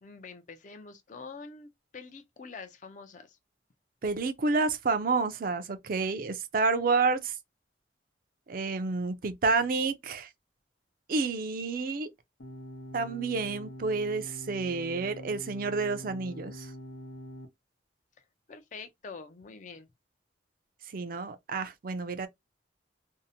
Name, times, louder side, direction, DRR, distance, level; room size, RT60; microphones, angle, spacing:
voice 1, 0.0-3.4 18.5-19.9, left 4 dB, 45° left, 0.4 m, -46 dB
voice 2, 4.0-7.3 8.5-10.3 11.1-12.1 12.9-16.7 20.9-22.3, right 4 dB, 50° right, 0.4 m, -29 dB
sound 1, 12.4-17.5, equal, 90° left, 0.8 m, -44 dB
2.7 x 2.0 x 2.6 m
head